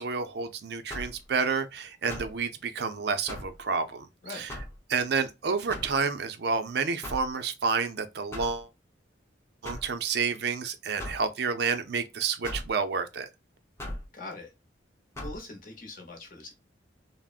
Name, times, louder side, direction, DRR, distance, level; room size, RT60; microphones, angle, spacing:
voice 1, 0.0-4.5 4.9-8.7 9.6-13.3, right 5 dB, 60° right, 0.4 m, -29 dB
Hitting wood against floor, 0.9-1.2 2.1-2.4 3.3-3.6 4.5-4.8 5.7-6.0 7.0-7.3 8.3-8.6 9.6-9.9 11.0-11.2 12.4-12.7 13.8-14.1 15.1-15.4, left 1 dB, 15° left, 0.7 m, -38 dB
voice 2, 14.1-14.5 15.2-16.5, left 3 dB, 45° left, 0.9 m, -42 dB
3.5 x 2.0 x 2.3 m
head